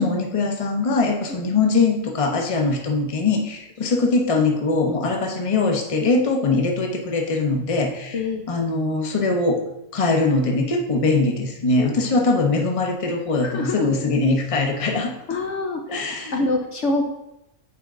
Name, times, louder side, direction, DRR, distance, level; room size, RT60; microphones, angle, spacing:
voice 1, 0.0-8.2 8.5-9.6 9.9-15.1 15.9-16.4, left 3 dB, 30° left, 2 dB, 0.9 m, -21 dB
voice 2, 8.1-8.5 11.8-12.2 13.4-14.0 15.3-15.8 16.3-17.0, left 2 dB, 60° left, 2 dB, 1.0 m, -25 dB
8.6 x 4.5 x 3.8 m, 0.85 s
omnidirectional pair, 1.4 m